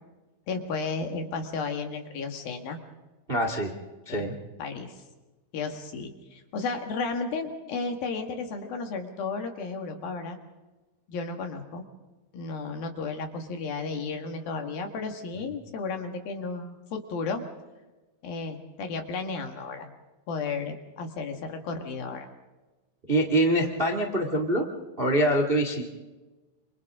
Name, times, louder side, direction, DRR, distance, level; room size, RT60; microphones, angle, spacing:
voice 1, 0.5-2.8 4.1-4.3 4.6-5.0 5.5-10.4 11.1-11.9 12.3-17.4 18.2-19.9 20.3-22.3, left 4 dB, 60° left, 4 dB, 3.3 m, -33 dB
voice 2, 3.3-3.7 4.0-4.3 23.1-24.6 25.0-25.8, right 1 dB, 85° right, 3 dB, 0.5 m, -24 dB
28.0 x 27.0 x 3.7 m, 1.2 s
omnidirectional pair, 5.4 m